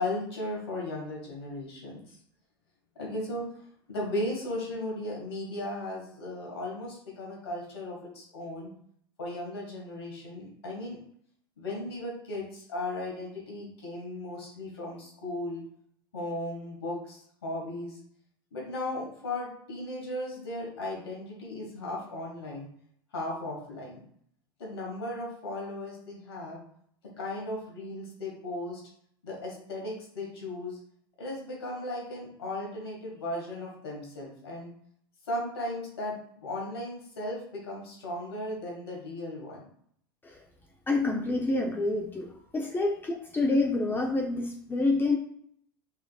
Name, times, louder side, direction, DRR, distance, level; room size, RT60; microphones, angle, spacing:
voice 1, 0.0-2.2 3.0-3.4 3.9-8.7 9.2-11.0 11.6-15.6 16.1-18.0 18.5-22.7 23.1-24.0 24.6-26.6 27.2-28.8 29.2-30.8 31.2-34.7 35.3-39.6, left 1 dB, 85° left, -3 dB, 1.7 m, -36 dB
voice 2, 40.9-42.3 42.5-45.2, left 2 dB, 15° left, 1 dB, 0.6 m, -27 dB
5.5 x 3.4 x 2.3 m, 0.65 s
hypercardioid pair, 95°, 13 cm